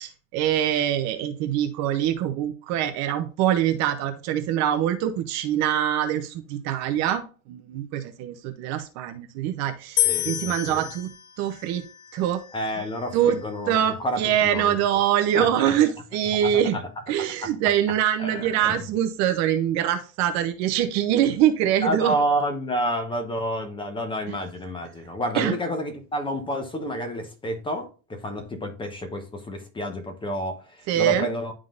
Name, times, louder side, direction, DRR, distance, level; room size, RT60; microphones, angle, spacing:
voice 1, 0.0-11.1 11.4-11.9 12.1-12.4 13.1-13.4 13.7-16.8 17.1-22.1 24.3-24.4 25.3-25.6 30.9-31.3, right 10 dB, 40° right, 0.8 m, -24 dB
sound 1, 10.0-13.2, left 14 dB, 80° left, 1.1 m, -29 dB
voice 2, 10.0-10.9 12.5-14.8 15.3-15.7 16.4-16.8 17.2-17.5 18.2-18.8 21.8-31.5, equal, 10° left, 0.9 m, -29 dB
11.0 x 3.8 x 2.5 m
supercardioid pair, 135°, 42 cm